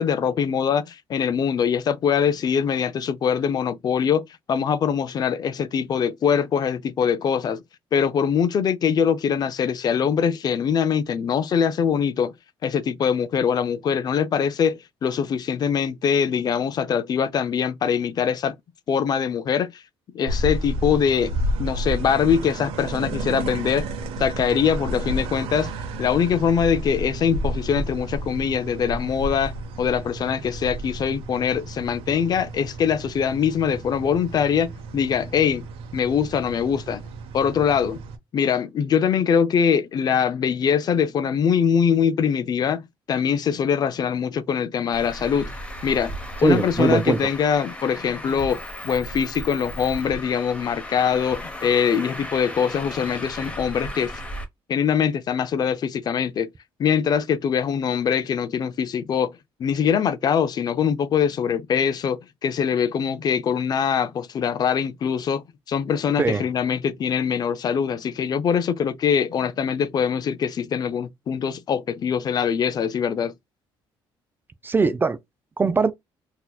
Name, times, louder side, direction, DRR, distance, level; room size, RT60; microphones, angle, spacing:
voice 1, 0.0-7.6 7.9-12.3 12.6-18.5 18.9-19.8 20.1-21.3 21.6-23.8 24.2-25.7 26.0-29.5 29.8-35.7 35.9-37.0 37.3-38.0 38.3-42.8 43.1-45.5 45.8-46.1 46.4-48.6 48.8-54.2 54.7-56.5 56.8-73.3, left 7 dB, 45° left, 0.4 m, -23 dB
sound 1, 20.3-38.2, right 1 dB, 85° right, 0.7 m, -31 dB
Traffic noise roadway noise, 44.9-54.4, equal, 15° left, 0.9 m, -36 dB
voice 2, 46.4-47.2 66.2-66.4 74.6-75.2 75.6-75.9, right 4 dB, 20° right, 0.4 m, -20 dB
4.0 x 2.8 x 2.3 m
cardioid pair, 120°, 9 cm